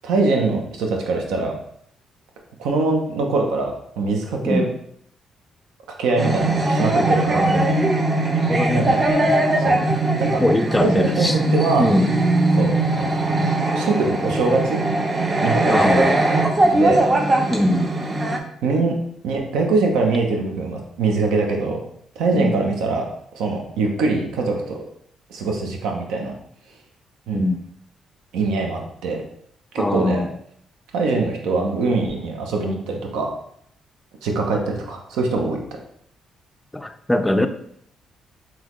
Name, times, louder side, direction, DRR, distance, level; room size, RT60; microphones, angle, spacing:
voice 1, 0.0-1.5 2.6-4.7 6.0-7.5 8.7-9.1 9.6-9.8 10.2-10.4 10.8-11.9 12.6-13.1 13.7-14.8 15.4-17.0 18.6-18.9 19.2-21.8 22.2-23.1 23.3-24.8 25.3-26.3 27.3-27.5 28.3-29.2 29.7-30.2 30.9-33.3 34.2-35.6, right 3 dB, 90° right, 2 dB, 0.7 m, -23 dB
sound 1, 6.2-18.4, right 2 dB, 30° right, 0.6 m, -20 dB
voice 2, 7.3-7.9 8.5-8.9 10.4-11.3 11.8-12.1 15.7-16.2 17.5-17.9 22.4-22.5 27.3-27.6 29.8-30.3 36.7-37.5, left 1 dB, 10° left, 8 dB, 0.3 m, -21 dB
3.9 x 2.9 x 3.0 m, 0.68 s
cardioid pair, 90°, 0 cm